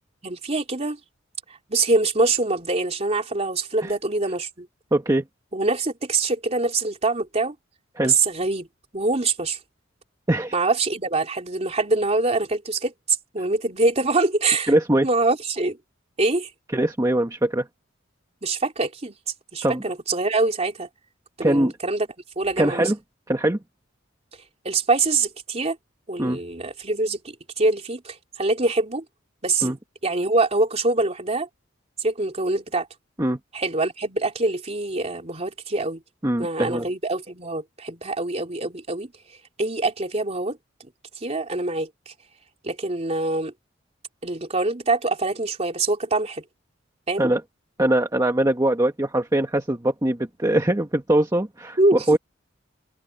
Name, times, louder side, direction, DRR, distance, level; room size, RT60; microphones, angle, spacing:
voice 1, 0.2-1.0 1.7-4.7 5.5-7.6 8.0-8.7 8.9-9.6 10.5-14.7 15.0-15.8 16.2-16.5 18.4-19.2 19.5-20.9 21.4-22.1 22.4-22.9 24.7-25.8 26.1-29.0 29.4-29.7 30.0-31.5 32.0-32.9 33.5-36.0 36.4-39.1 39.6-40.6 41.2-42.1 42.6-43.5 44.2-46.4 47.1-47.3 51.8-52.2, right 3 dB, 35° right, 3.5 m, -24 dB
voice 2, 4.9-5.2 8.0-8.2 10.3-10.5 14.7-15.1 16.7-17.7 19.6-19.8 21.4-21.7 22.6-22.9 23.3-23.6 26.2-26.4 29.6-29.8 33.2-33.4 36.2-36.9 47.2-47.4 47.8-52.2, right 1 dB, 20° right, 1.5 m, -22 dB
open air
head